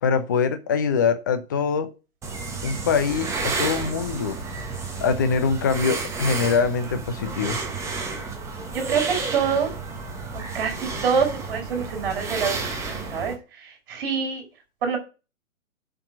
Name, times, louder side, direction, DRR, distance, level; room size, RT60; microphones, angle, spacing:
voice 1, 0.0-1.9 2.6-4.4 5.0-7.6, left 5 dB, 15° left, 10 dB, 0.6 m, -23 dB
sound 1, 2.2-13.3, right 4 dB, 5° right, 1.2 m, -31 dB
voice 2, 8.7-9.7 10.3-12.6 12.9-14.4 14.8-15.0, right 6 dB, 40° right, 4 dB, 4.5 m, -26 dB
7.2 x 6.1 x 6.0 m, 0.31 s
figure-of-eight pair, 135°, 42 cm